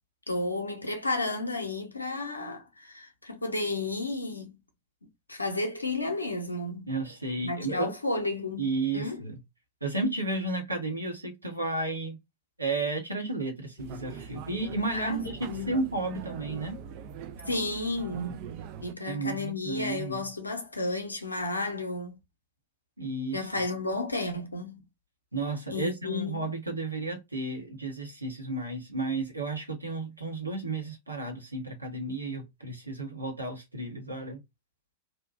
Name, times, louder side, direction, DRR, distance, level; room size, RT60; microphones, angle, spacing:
voice 1, 0.3-4.5 5.3-6.9 7.4-8.7 8.9-9.2 14.9-15.2 15.4-15.8 17.4-18.4 18.8-22.2 23.3-24.8 25.7-26.5, left 2 dB, 80° left, 0.7 m, -32 dB
voice 2, 6.9-7.9 8.6-9.4 9.8-12.2 12.6-16.8 19.1-20.2 23.0-23.6 25.3-34.4, right 2 dB, 85° right, 0.8 m, -33 dB
sound 1, 13.8-18.9, right 7 dB, 45° right, 0.4 m, -42 dB
2.7 x 2.2 x 2.2 m
figure-of-eight pair, 90°, 0 cm